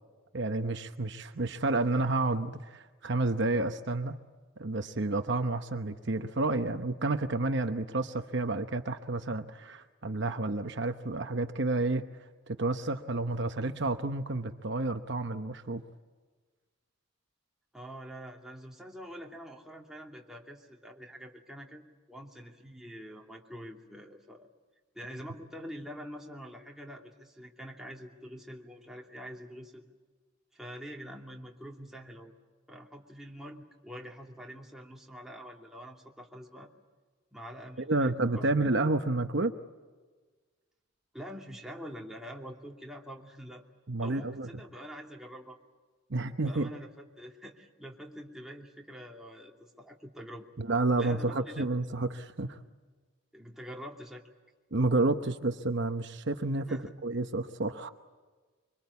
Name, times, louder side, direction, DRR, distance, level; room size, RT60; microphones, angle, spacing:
voice 1, 0.3-4.2 4.6-12.0 12.5-15.8 37.8-39.5 43.9-44.5 46.1-46.7 50.6-52.6 54.7-57.9, right 2 dB, 55° right, 7 dB, 1.0 m, -30 dB
voice 2, 17.7-24.5 24.9-29.8 30.5-32.3 32.7-36.7 37.3-38.5 41.1-43.6 44.0-45.6 46.4-50.5 51.0-51.7 53.3-54.2 56.7-56.9, equal, ahead, -1 dB, 2.6 m, -45 dB
25.0 x 24.5 x 8.3 m, 1.4 s
head